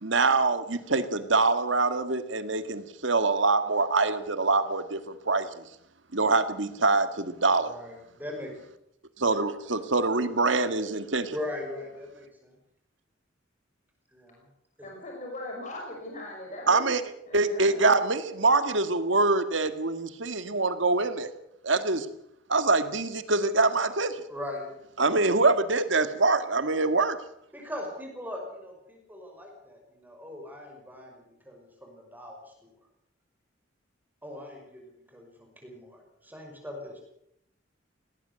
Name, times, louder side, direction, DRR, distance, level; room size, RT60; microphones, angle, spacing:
voice 1, 0.0-5.6 6.1-7.7 9.2-11.4 16.7-17.0 17.3-21.3 21.6-22.1 22.5-24.2 25.0-27.2, right 3 dB, 70° right, 10 dB, 1.8 m, -24 dB
voice 2, 7.6-8.5 11.3-12.6 14.1-14.5 14.8-14.9 24.3-24.8 26.7-26.8 27.5-32.7 34.2-37.0, left 1 dB, 10° right, 2 dB, 5.7 m, -40 dB
voice 3, 14.8-16.9 17.3-17.9, left 2 dB, 40° left, 0 dB, 5.4 m, -39 dB
19.0 x 18.5 x 8.1 m, 0.76 s
head